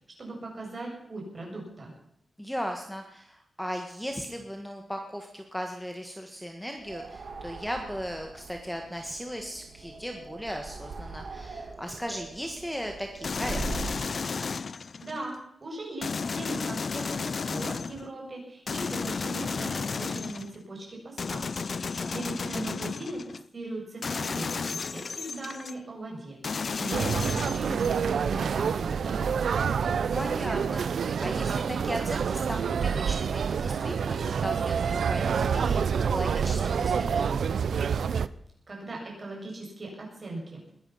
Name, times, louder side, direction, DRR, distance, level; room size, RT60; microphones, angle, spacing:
voice 1, 0.2-1.9 15.0-21.5 21.8-26.4 26.8-29.4 38.7-40.6, right 2 dB, 35° right, -2 dB, 7.2 m, -39 dB
voice 2, 2.4-13.6 22.0-22.3 30.1-34.2 34.4-37.5, equal, 5° left, 4 dB, 1.5 m, -37 dB
sound 1, 6.8-14.1, right 3 dB, 65° right, 2.8 m, -41 dB
sound 2, 13.2-15.2 16.0-18.1 18.7-20.6 21.2-23.4 24.0-25.7 26.4-28.1, left 5 dB, 50° left, 0.5 m, -33 dB
sound 3, 26.9-38.3, right 6 dB, 85° right, 0.6 m, -27 dB
21.0 x 12.0 x 5.7 m, 0.75 s
wide cardioid pair, 150°, 0 cm